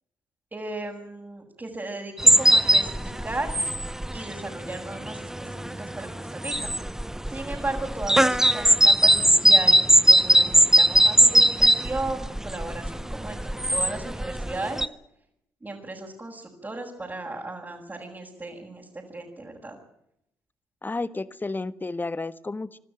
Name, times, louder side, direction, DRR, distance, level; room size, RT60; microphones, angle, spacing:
voice 1, 0.5-3.6 4.1-6.7 7.3-14.8 15.6-19.8, right 2 dB, 25° right, -4 dB, 6.8 m, -35 dB
sound 1, 2.2-14.9, right 1 dB, 5° right, 0.8 m, -20 dB
voice 2, 20.8-22.8, left 3 dB, 25° left, 15 dB, 1.4 m, -31 dB
26.0 x 12.5 x 9.0 m, 0.77 s
supercardioid pair, 50°, 8 cm